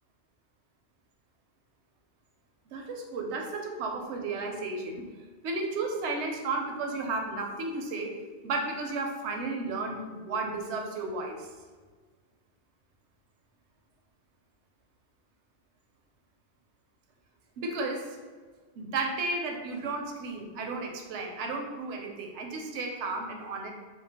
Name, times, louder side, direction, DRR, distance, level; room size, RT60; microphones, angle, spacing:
voice 1, 2.7-5.1 5.4-8.1 8.4-11.5 17.6-18.2 18.8-23.7, right 3 dB, 80° right, 2 dB, 0.9 m, -33 dB
3.1 x 2.1 x 3.4 m, 1.5 s
omnidirectional pair, 1.2 m